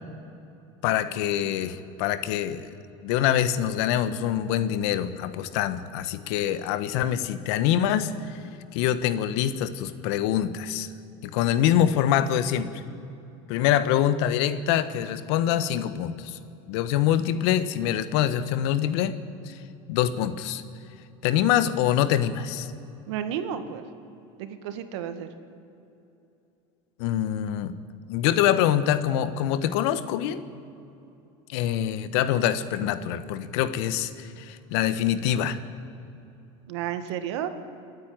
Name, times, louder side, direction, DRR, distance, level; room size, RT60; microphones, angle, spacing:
voice 1, 0.8-2.7 3.0-8.4 8.7-10.9 11.2-12.8 13.5-16.4 16.7-19.2 19.4-19.6 19.9-20.6 21.2-22.7 27.0-27.8 28.1-30.4 31.5-35.6, left 10 dB, 70° left, 13 dB, 1.2 m, -25 dB
voice 2, 23.1-23.8 24.4-25.3 36.7-37.5, right 9 dB, 80° right, 9 dB, 1.8 m, -32 dB
28.0 x 9.7 x 9.6 m, 2.8 s
supercardioid pair, 125°, 15 cm